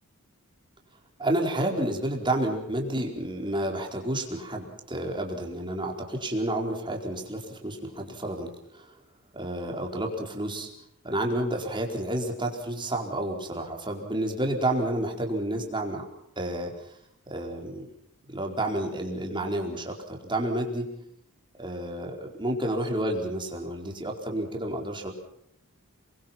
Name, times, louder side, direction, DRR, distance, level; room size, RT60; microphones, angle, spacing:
voice 1, 1.2-8.9 9.3-10.7 11.0-16.0 16.4-16.9 17.3-17.9 18.3-20.9 21.6-25.1, right 1 dB, 20° right, 1 dB, 4.6 m, -30 dB
28.5 x 23.0 x 6.0 m, 0.76 s
head